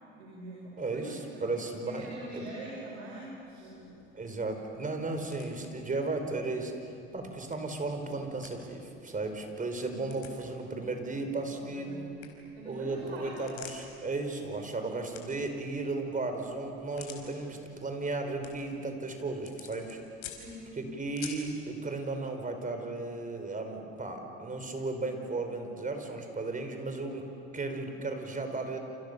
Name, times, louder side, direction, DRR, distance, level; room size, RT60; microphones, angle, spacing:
voice 1, 0.2-1.4 1.8-4.0 11.5-12.0 12.5-13.5 20.3-20.7, right 2 dB, 85° right, -4 dB, 6.4 m, -44 dB
voice 2, 0.8-2.4 4.1-12.1 12.7-20.0 20.8-27.2 27.5-28.8, right 3 dB, 25° right, 5 dB, 5.4 m, -35 dB
sound 1, 3.4-21.6, left 9 dB, 70° left, 4.9 m, -53 dB
29.0 x 28.5 x 7.1 m, 2.6 s
hypercardioid pair, 70°, 31 cm